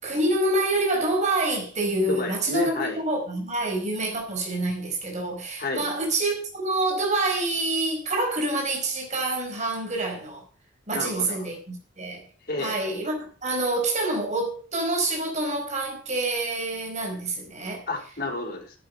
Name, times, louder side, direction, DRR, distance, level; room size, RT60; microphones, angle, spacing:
voice 1, 0.0-10.4 10.9-12.2 12.6-17.8, right 2 dB, 40° right, 4.8 m, -27 dB
voice 2, 2.1-3.0 5.6-5.9 10.9-11.4 12.5-12.7 17.9-18.8, left 3 dB, 50° left, 4.5 m, -30 dB
11.0 x 8.7 x 6.6 m
head